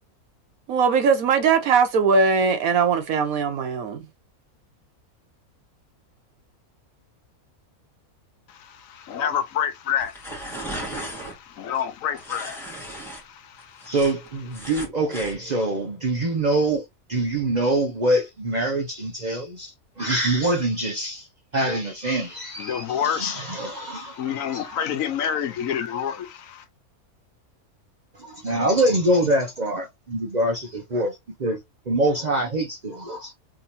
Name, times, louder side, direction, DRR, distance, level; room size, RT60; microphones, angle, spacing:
voice 1, 0.7-4.0, right 5 dB, 75° right, 1.2 m, -20 dB
voice 2, 8.5-13.9 14.6-14.7 22.6-26.6, left 9 dB, 70° left, 0.9 m, -29 dB
sound 1, 10.0-11.4 12.2-13.2 13.6-15.4, right 1 dB, ahead, 1.4 m, -35 dB
voice 3, 13.8-21.3 21.5-24.8 28.3-31.6 31.9-33.3, right 1 dB, 50° right, 0.5 m, -25 dB
3.6 x 2.8 x 2.6 m
omnidirectional pair, 1.5 m